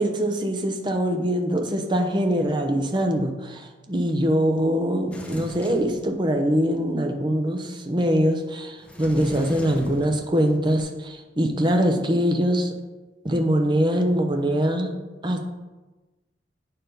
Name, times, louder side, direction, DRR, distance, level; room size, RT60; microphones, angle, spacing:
voice 1, 0.0-12.7 13.2-14.9 15.2-15.4, equal, 25° right, 4 dB, 0.8 m, -23 dB
Sliding door, 5.1-6.6 8.8-10.8, left 1 dB, 5° left, 0.8 m, -40 dB
8.5 x 6.7 x 4.0 m, 1.2 s
head